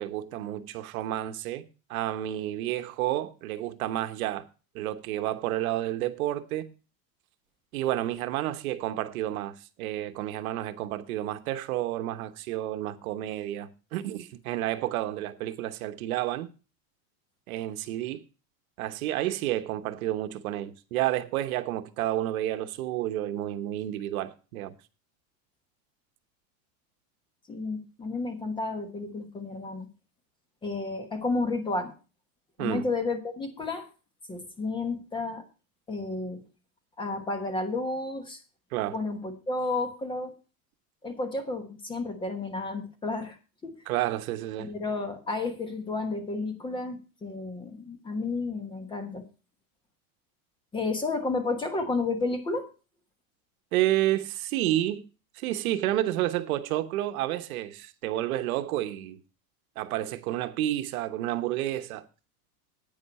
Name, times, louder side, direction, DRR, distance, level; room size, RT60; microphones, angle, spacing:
voice 1, 0.0-1.6 1.9-4.5 4.7-6.7 7.7-16.5 17.5-18.2 18.8-24.7 32.6-32.8 38.7-39.0 43.9-44.7 53.7-55.1 55.3-59.2 59.8-62.0, right 14 dB, 80° right, 1.2 m, -30 dB
voice 2, 27.5-29.9 30.6-31.9 32.6-33.9 34.3-35.4 35.9-36.4 37.0-38.4 38.9-40.3 41.0-43.4 43.6-43.8 44.6-49.2 50.7-52.7, left 3 dB, 10° left, 1.1 m, -31 dB
10.5 x 9.3 x 4.3 m
supercardioid pair, 175°, 42 cm